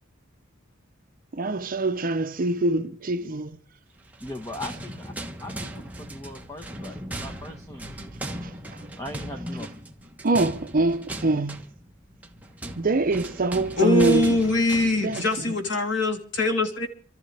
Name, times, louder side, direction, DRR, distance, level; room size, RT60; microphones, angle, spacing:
voice 1, 1.3-3.5 10.2-11.6 12.8-14.4 15.0-15.3, right 2 dB, 45° right, 0.7 m, -24 dB
sound 1, 4.1-15.5, right 1 dB, 10° right, 1.3 m, -38 dB
voice 2, 4.2-5.1 5.4-8.1 9.0-9.7, left 1 dB, 15° left, 1.4 m, -39 dB
voice 3, 13.8-16.9, left 2 dB, 65° left, 3.2 m, -22 dB
28.0 x 13.5 x 3.4 m
head